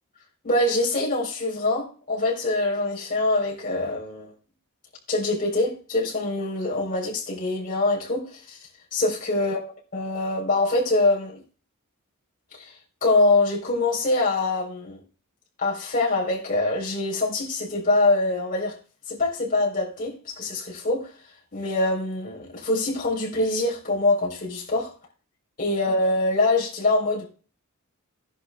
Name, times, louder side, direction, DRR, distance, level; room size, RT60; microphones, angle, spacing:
voice 1, 0.4-4.3 5.1-8.6 8.9-9.6 9.9-11.4 12.6-12.7 13.0-15.0 15.6-18.8 19.1-21.1 21.5-24.9 25.6-27.3, left 2 dB, 40° left, 3.9 m, -24 dB
17.0 x 11.0 x 2.3 m
head